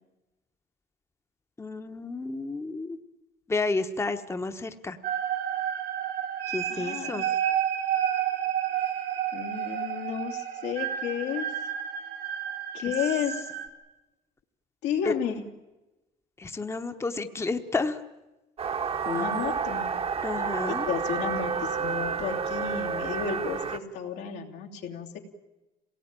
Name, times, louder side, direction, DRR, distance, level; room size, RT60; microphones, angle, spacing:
voice 1, 1.6-3.0 3.5-5.0 6.5-7.3 15.0-15.1 16.4-18.0 19.0-19.2 20.2-20.9, left 3 dB, 15° left, 8 dB, 1.1 m, -31 dB
sound 1, 5.0-13.7, right 10 dB, 80° right, 3.0 m, -30 dB
voice 2, 6.7-7.2 9.3-11.5 12.7-13.5 14.8-15.4 19.0-19.9 20.7-25.2, left 8 dB, 85° left, 0 dB, 3.0 m, -32 dB
sound 2, 18.6-23.8, right 6 dB, 35° right, 1.2 m, -30 dB
26.5 x 18.0 x 9.0 m, 1.1 s
cardioid pair, 110°, 17 cm